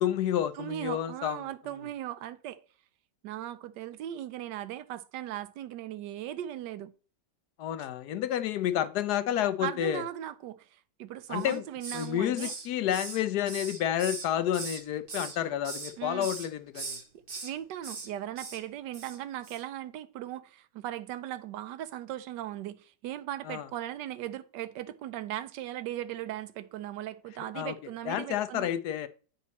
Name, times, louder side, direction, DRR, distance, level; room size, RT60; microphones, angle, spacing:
voice 1, 0.0-1.4 7.6-10.0 11.3-11.6 11.9-17.0 23.5-23.7 27.5-27.8 28.0-29.1, left 11 dB, 70° left, 1.1 m, -30 dB
voice 2, 0.5-2.6 3.2-6.9 9.6-12.5 16.0-16.3 17.4-28.7, right 12 dB, 80° right, 1.3 m, -38 dB
Hiss, 11.3-12.1 12.4-14.8 15.1-15.9 16.2-16.5 16.7-17.5 17.8-18.1 18.4-18.6 18.9-19.2 19.4-19.6, right 4 dB, 35° right, 1.2 m, -40 dB
9.5 x 4.1 x 4.1 m
omnidirectional pair, 1.9 m